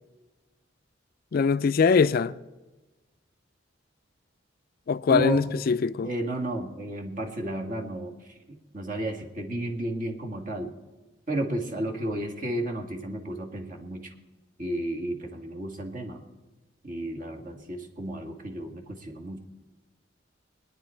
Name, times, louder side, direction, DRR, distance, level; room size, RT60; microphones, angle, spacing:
voice 1, 1.3-2.3 4.9-6.1, left 5 dB, 50° left, 0.3 m, -22 dB
voice 2, 5.1-5.4 6.0-8.3 8.7-10.8 11.3-14.1 14.6-16.2 16.8-19.4, right 1 dB, 45° right, 1.8 m, -32 dB
22.5 x 10.0 x 4.4 m
head